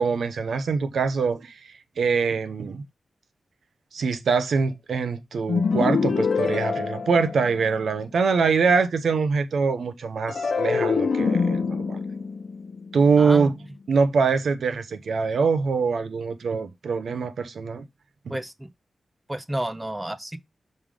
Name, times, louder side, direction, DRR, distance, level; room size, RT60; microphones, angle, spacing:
voice 1, 0.0-2.8 3.9-12.0 12.9-13.5 13.9-17.8, right 5 dB, 80° right, 0.8 m, -24 dB
sound 1, 5.5-7.9 10.3-13.6, left 5 dB, 65° left, 0.6 m, -25 dB
voice 2, 13.2-13.5 18.3-18.7 19.3-20.4, right 1 dB, 10° right, 0.6 m, -31 dB
5.4 x 4.9 x 3.7 m
wide cardioid pair, 150°, 0 cm